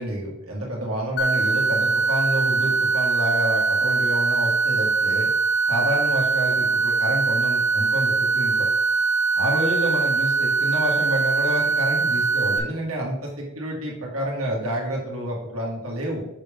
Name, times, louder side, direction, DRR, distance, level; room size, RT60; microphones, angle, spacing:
voice 1, 0.0-5.3 5.7-8.7 9.3-16.2, equal, 85° right, -3 dB, 1.8 m, -28 dB
sound 1, 1.2-12.6, right 4 dB, 50° left, 0.7 m, -22 dB
6.6 x 5.0 x 3.5 m, 0.88 s
head